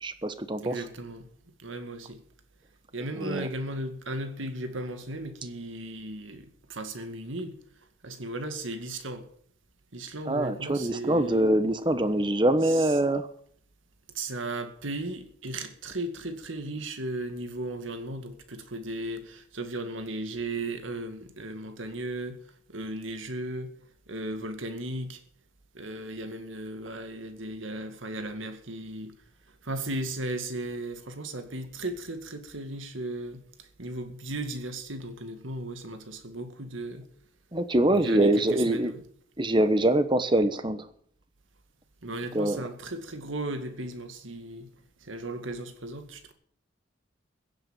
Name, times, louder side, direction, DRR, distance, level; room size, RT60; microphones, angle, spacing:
voice 1, 0.0-0.7 3.2-3.4 10.3-13.3 37.5-38.9 39.4-40.9 42.3-42.6, right 1 dB, 25° right, 1.1 m, -24 dB
voice 2, 0.6-1.3 1.6-2.2 2.9-7.6 8.0-9.3 9.9-11.5 12.6-13.0 14.1-22.4 22.7-23.8 24.1-25.2 25.7-29.2 29.6-37.1 37.9-39.0 42.0-44.7 45.0-46.3, right 1 dB, 80° right, 2.1 m, -36 dB
15.5 x 8.3 x 9.0 m
head